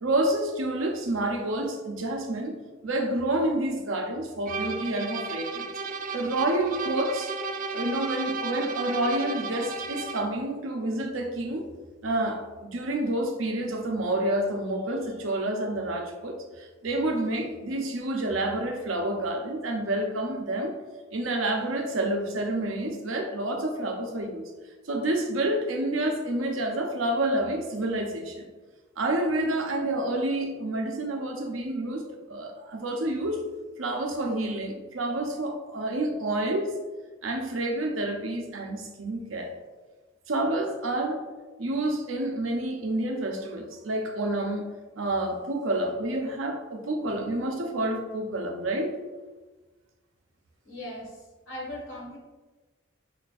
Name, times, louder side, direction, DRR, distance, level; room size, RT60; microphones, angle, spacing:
voice 1, 0.0-2.6 2.8-5.7 6.1-7.3 7.7-11.7 12.0-20.7 21.1-24.5 24.9-28.5 29.0-33.4 33.8-36.8 37.2-39.5 40.3-41.2 41.6-44.7 45.0-48.9, right 1 dB, 85° right, 3 dB, 0.8 m, -29 dB
sound 1, 4.5-10.4, right 4 dB, 40° right, 0.3 m, -34 dB
voice 2, 50.6-51.1 51.5-52.2, left 1 dB, 70° left, -2 dB, 1.4 m, -38 dB
5.0 x 4.2 x 2.5 m, 1.2 s
head